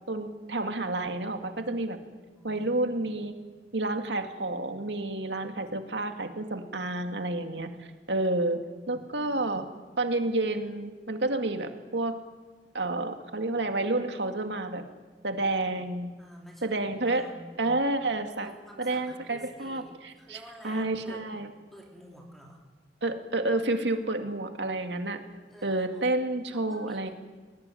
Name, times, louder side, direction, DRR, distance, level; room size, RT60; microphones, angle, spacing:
voice 1, 0.1-2.0 2.4-3.3 3.7-8.6 8.9-9.7 10.0-12.2 12.7-14.8 15.2-16.1 16.6-17.3 17.6-18.5 18.8-21.5 23.0-25.2 25.6-27.1, right 2 dB, 85° right, 6 dB, 2.3 m, -30 dB
voice 2, 2.0-2.7 16.2-17.8 18.4-21.2 21.7-22.6 25.5-26.0 26.5-27.1, equal, ahead, -1 dB, 3.1 m, -50 dB
20.5 x 19.5 x 9.9 m, 1.3 s
head